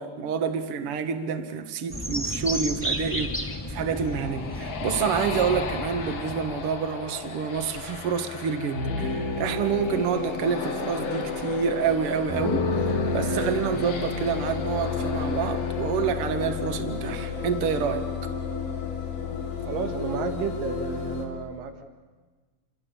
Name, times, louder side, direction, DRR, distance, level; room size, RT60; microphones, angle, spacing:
voice 1, 0.0-3.4 3.7-18.1, right 6 dB, 50° right, 8 dB, 2.0 m, -28 dB
sound 1, 1.9-6.9, equal, 5° left, 1.4 m, -33 dB
sound 2, 3.0-21.3, left 4 dB, 70° left, 4.9 m, -32 dB
sound 3, 3.5-17.0, left 5 dB, 45° left, 1.9 m, -38 dB
voice 2, 19.7-21.8, right 5 dB, 75° right, 6 dB, 3.5 m, -32 dB
28.0 x 24.0 x 6.9 m, 1.3 s
omnidirectional pair, 3.9 m